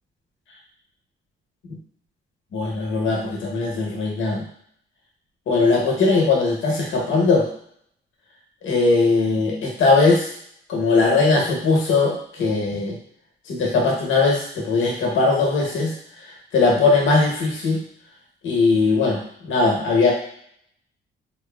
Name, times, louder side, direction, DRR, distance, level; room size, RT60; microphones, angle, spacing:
voice 1, 2.5-4.5 5.5-7.5 8.6-10.3 10.7-12.9 13.5-15.9 16.5-17.8 18.4-20.1, left 3 dB, 75° left, -2 dB, 0.9 m, -19 dB
2.9 x 2.4 x 2.2 m, 0.68 s
cardioid pair, 90°, 20 cm